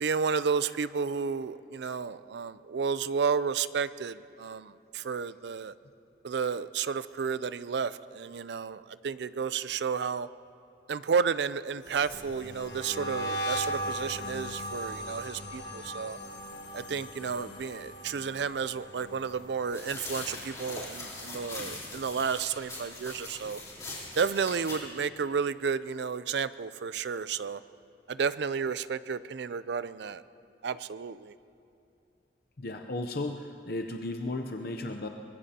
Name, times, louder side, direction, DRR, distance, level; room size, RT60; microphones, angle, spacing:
voice 1, 0.0-5.7 6.2-10.3 10.9-16.2 16.7-23.6 24.2-27.6 28.1-30.2 30.6-31.3, right 6 dB, 70° right, 15 dB, 0.4 m, -32 dB
sound 1, 11.8-21.0 21.3-21.7 22.0-23.6, right 1 dB, 75° left, 1.3 m, -39 dB
sound 2, 19.7-24.8, left 2 dB, 20° left, 3.3 m, -41 dB
voice 2, 32.6-35.1, left 2 dB, 55° left, 4 dB, 0.6 m, -35 dB
24.0 x 20.5 x 2.8 m, 2.6 s
head